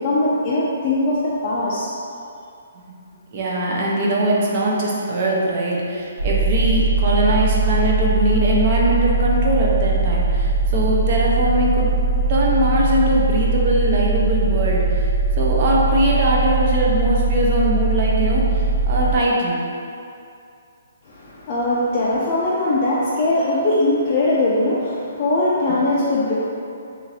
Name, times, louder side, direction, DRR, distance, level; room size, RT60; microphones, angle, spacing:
voice 1, 0.0-1.9 21.0-26.4, left 2 dB, 25° left, -8 dB, 0.4 m, -20 dB
voice 2, 3.3-11.9 12.3-15.1 15.4-19.7, right 1 dB, 35° right, -3 dB, 0.6 m, -21 dB
sound 1, 6.2-19.1, right 3 dB, 85° right, 0.7 m, -20 dB
3.0 x 2.6 x 4.0 m, 2.5 s
hypercardioid pair, 170°, 0 cm